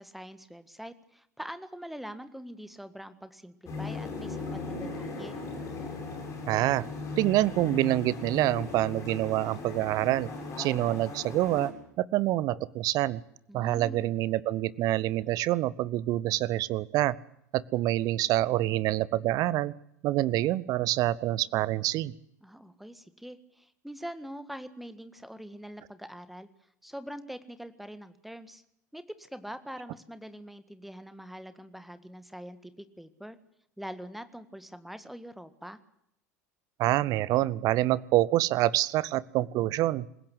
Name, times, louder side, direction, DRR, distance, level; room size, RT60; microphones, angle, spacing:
voice 1, 0.0-5.4 13.5-14.1 22.4-26.5 26.8-28.6 28.9-33.4 33.8-35.8, equal, ahead, 11 dB, 1.7 m, -44 dB
sound 1, 3.7-11.7, left 3 dB, 35° left, 7.5 m, -38 dB
voice 2, 6.5-6.9 7.2-10.3 10.6-13.2 13.5-17.2 17.5-19.7 20.0-22.1 36.8-40.1, right 15 dB, 45° right, 21 dB, 0.8 m, -26 dB
27.0 x 16.0 x 8.1 m, 0.76 s
figure-of-eight pair, 75°, 9 cm